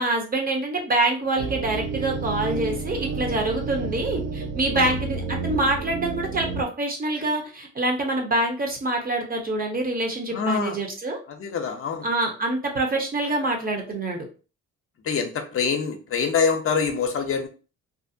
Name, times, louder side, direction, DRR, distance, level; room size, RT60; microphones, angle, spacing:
voice 1, 0.0-11.2 12.0-14.2, right 2 dB, 30° right, 2 dB, 0.8 m, -26 dB
sound 1, 1.4-6.6, right 4 dB, 60° right, 0.5 m, -30 dB
voice 2, 10.3-10.8 11.3-12.1 15.0-17.5, left 6 dB, 45° left, 5 dB, 0.5 m, -25 dB
2.5 x 2.0 x 2.6 m, 0.35 s
cardioid pair, 90°, 30 cm